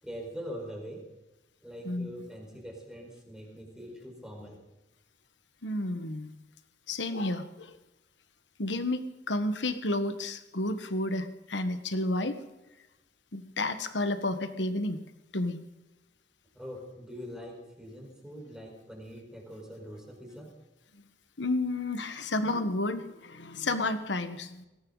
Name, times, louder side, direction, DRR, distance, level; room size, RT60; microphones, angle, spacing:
voice 1, 0.0-1.0 1.6-4.6 16.5-20.5, equal, 5° right, 0 dB, 4.8 m, -43 dB
voice 2, 5.6-6.3 6.9-7.8 8.6-12.4 13.3-15.0 15.3-15.6 21.4-24.6, left 2 dB, 75° left, 10 dB, 1.5 m, -31 dB
20.0 x 17.5 x 4.0 m, 1.0 s
head